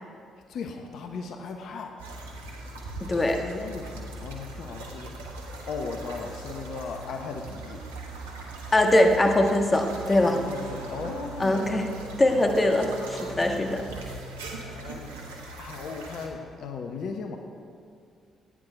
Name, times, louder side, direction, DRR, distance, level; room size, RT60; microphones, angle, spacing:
voice 1, 0.5-1.9 3.4-5.2 5.6-7.8 10.2-11.8 14.5-15.2 15.6-17.4, left 4 dB, 60° left, 4 dB, 1.0 m, -37 dB
sound 1, 2.0-16.3, right 2 dB, 85° right, 1.3 m, -40 dB
voice 2, 3.0-3.4 8.7-10.3 11.4-11.8 12.2-13.8, left 1 dB, 25° left, 3 dB, 1.5 m, -22 dB
15.0 x 9.7 x 5.1 m, 2.3 s
hypercardioid pair, 45°, 0 cm